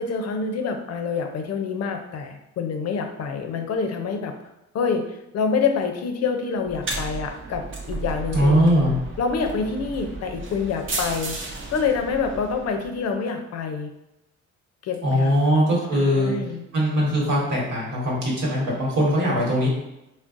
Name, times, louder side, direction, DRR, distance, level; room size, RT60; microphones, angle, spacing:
voice 1, 0.0-4.4 4.7-5.0 5.3-8.6 9.2-11.4 11.7-13.9 14.8-15.4 15.9-16.6, left 5 dB, 55° left, 5 dB, 0.5 m, -26 dB
sound 1, 6.6-13.0, right 2 dB, 40° right, 0.7 m, -33 dB
voice 2, 8.3-8.9 15.0-16.3 16.7-19.7, equal, 80° right, -4 dB, 1.2 m, -21 dB
3.8 x 2.1 x 2.5 m, 0.91 s
cardioid pair, 90°, 30 cm